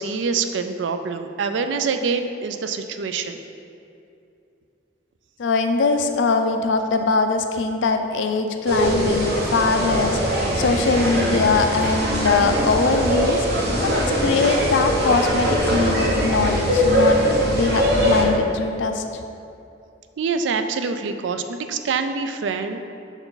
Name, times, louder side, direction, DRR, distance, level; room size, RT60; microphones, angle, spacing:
voice 1, 0.0-3.4 20.2-22.8, right 5 dB, 75° right, 8 dB, 0.4 m, -25 dB
voice 2, 5.4-19.0, left 4 dB, 80° left, 6 dB, 0.4 m, -22 dB
sound 1, 8.7-18.2, equal, 60° right, 1.0 m, -21 dB
5.6 x 4.5 x 3.9 m, 2.6 s
head